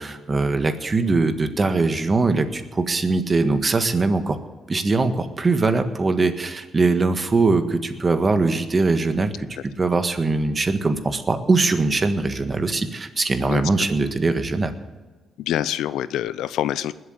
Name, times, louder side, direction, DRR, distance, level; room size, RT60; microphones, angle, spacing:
voice 1, 0.0-4.4 4.7-9.5 9.8-14.7, right 3 dB, 30° right, 8 dB, 1.6 m, -21 dB
voice 2, 13.4-13.9 15.4-16.9, left 12 dB, 85° left, 16 dB, 0.6 m, -26 dB
20.5 x 7.8 x 8.2 m, 1.3 s
cardioid pair, 90°, 0 cm